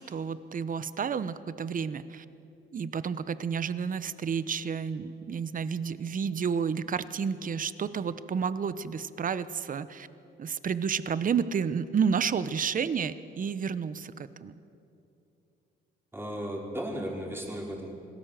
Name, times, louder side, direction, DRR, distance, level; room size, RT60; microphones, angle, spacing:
voice 1, 0.0-2.2 2.7-10.1 10.4-14.5, right 6 dB, 45° right, 14 dB, 1.0 m, -31 dB
voice 2, 16.1-18.0, equal, 10° right, -1 dB, 4.9 m, -35 dB
26.0 x 19.0 x 7.6 m, 2.7 s
cardioid pair, 90°, 20 cm